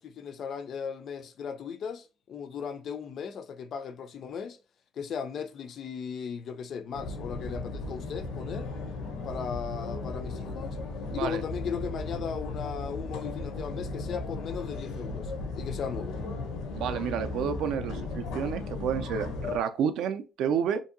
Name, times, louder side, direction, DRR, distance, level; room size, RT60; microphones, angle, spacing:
voice 1, 0.0-4.6 4.9-8.7 9.2-10.8 11.1-16.2, left 6 dB, 45° left, 0.3 m, -37 dB
sound 1, 6.9-19.6, left 3 dB, 85° left, 0.6 m, -36 dB
voice 2, 11.1-11.4 16.7-20.8, right 8 dB, 65° right, 0.3 m, -30 dB
2.7 x 2.6 x 2.5 m
cardioid pair, 165°, 0 cm